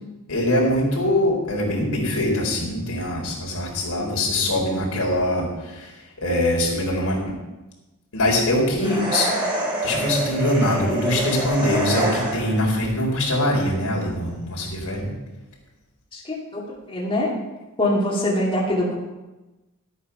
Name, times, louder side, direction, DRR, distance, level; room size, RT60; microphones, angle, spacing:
voice 1, 0.3-7.3 8.1-9.3 9.8-15.1, left 1 dB, 85° left, -2 dB, 3.9 m, -23 dB
sound 1, 8.8-12.7, right 2 dB, 25° right, 4.7 m, -26 dB
voice 2, 16.1-16.6 16.9-17.3 17.8-18.9, left 1 dB, 25° left, -4 dB, 2.5 m, -23 dB
13.0 x 8.6 x 5.6 m, 1.1 s
head